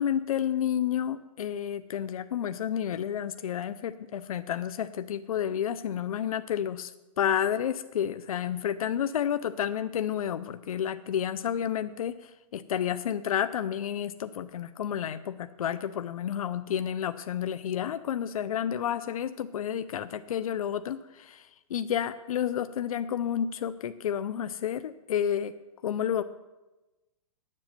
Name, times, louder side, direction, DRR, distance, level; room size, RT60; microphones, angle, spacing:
voice 1, 0.0-25.5 25.8-26.2, left 9 dB, 80° left, 12 dB, 0.6 m, -30 dB
9.5 x 7.6 x 9.0 m, 1.1 s
hypercardioid pair, 150°, 18 cm